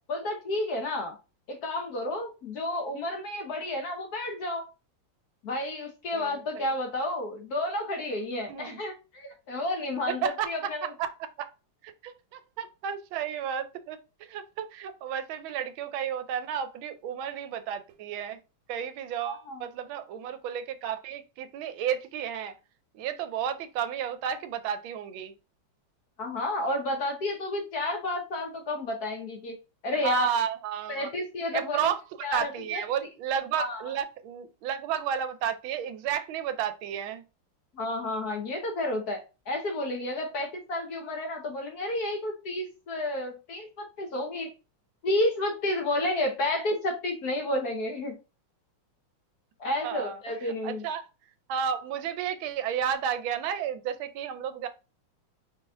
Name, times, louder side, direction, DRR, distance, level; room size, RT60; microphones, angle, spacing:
voice 1, 0.1-1.2 1.5-4.6 5.4-10.9 19.2-19.6 26.2-29.6 29.8-30.3 30.9-31.8 32.2-32.8 33.6-33.9 37.7-44.5 45.0-48.1 49.6-51.0, left 1 dB, 55° left, 1.3 m, -31 dB
voice 2, 6.1-6.7 8.5-8.8 10.2-11.5 11.8-18.4 18.7-22.5 22.9-25.3 29.9-31.1 31.5-32.0 32.3-37.2 49.8-51.1 51.5-54.7, right 8 dB, 75° right, 1.3 m, -32 dB
5.2 x 3.9 x 2.5 m
omnidirectional pair, 2.3 m